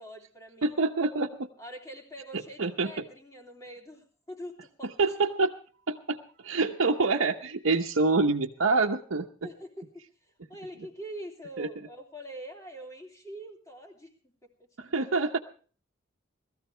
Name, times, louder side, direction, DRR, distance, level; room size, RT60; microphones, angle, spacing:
voice 1, 0.0-0.8 1.6-4.9 9.4-14.3 14.8-15.0, equal, 15° left, 0 dB, 2.9 m, -44 dB
voice 2, 0.6-1.5 2.6-3.0 5.0-5.5 5.9-6.2 6.4-9.5 11.6-11.7 14.8-15.4, right 3 dB, 90° right, -1 dB, 0.9 m, -26 dB
20.0 x 14.0 x 3.4 m, 0.42 s
head